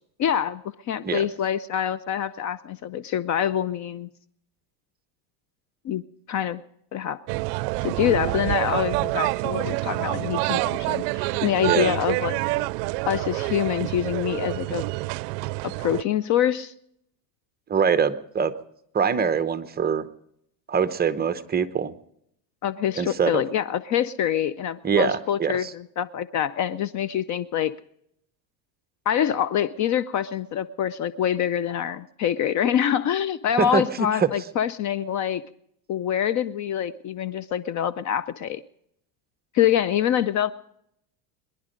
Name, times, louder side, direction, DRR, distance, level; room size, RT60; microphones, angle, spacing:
voice 1, 0.2-4.1 5.8-6.0 6.3-6.6 6.9-7.2 7.8-12.4 13.1-14.8 15.6-16.7 22.6-27.7 29.1-35.4 35.9-38.6 39.5-40.5, left 10 dB, 35° left, 16 dB, 0.5 m, -25 dB
sound 1, 7.3-16.0, right 22 dB, 70° right, 0.5 m, -27 dB
voice 2, 11.7-12.0 17.7-18.5 18.9-20.1 20.7-21.9 23.0-23.4 24.8-25.7 33.6-33.8 34.2-34.3, right 6 dB, 20° right, 12 dB, 0.8 m, -23 dB
23.5 x 11.0 x 5.1 m, 0.73 s
supercardioid pair, 125°, 49 cm